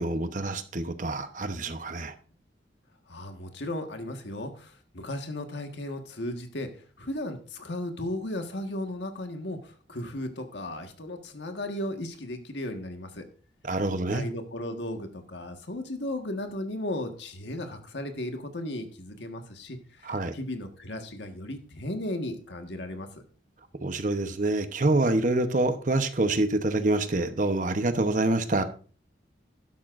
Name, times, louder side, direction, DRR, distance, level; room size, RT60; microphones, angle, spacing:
voice 1, 0.0-2.1 13.6-14.2 20.0-20.3 23.8-28.6, right 2 dB, 45° right, 0.9 m, -26 dB
voice 2, 3.1-13.2 14.1-23.2, left 1 dB, 75° left, 1.6 m, -35 dB
12.5 x 11.5 x 2.5 m
head